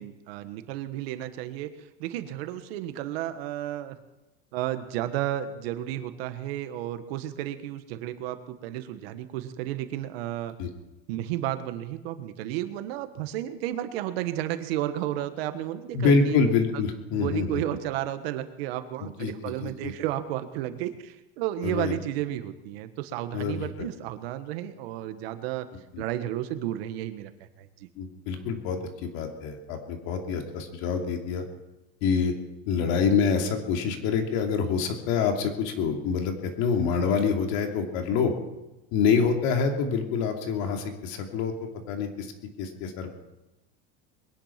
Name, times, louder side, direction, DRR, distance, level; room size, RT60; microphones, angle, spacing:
voice 1, 0.0-1.7 2.0-4.0 4.5-10.5 11.1-16.4 16.7-16.8 17.1-25.7 26.0-27.3 27.6-27.9, right 13 dB, 85° right, 10 dB, 1.5 m, -32 dB
voice 2, 15.9-17.6 19.0-19.9 21.6-21.9 23.3-23.9 25.9-26.0 28.0-31.4 32.0-32.3 32.7-38.3 38.9-42.3 42.6-43.2, left 5 dB, 65° left, 3 dB, 2.8 m, -26 dB
22.0 x 10.5 x 5.9 m, 1.0 s
supercardioid pair, 145°, 30 cm